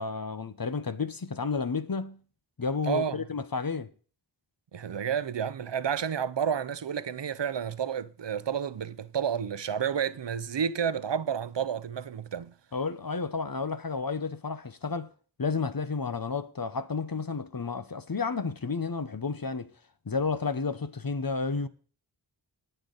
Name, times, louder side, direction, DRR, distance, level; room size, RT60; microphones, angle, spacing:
voice 1, 0.0-2.2 2.6-3.9 12.7-15.1 15.4-19.7 20.1-21.7, left 4 dB, 50° left, 0.9 m, -31 dB
voice 2, 2.9-3.2 4.7-12.5, right 7 dB, 75° right, 0.6 m, -30 dB
20.0 x 6.7 x 4.0 m
wide cardioid pair, 50°, 44 cm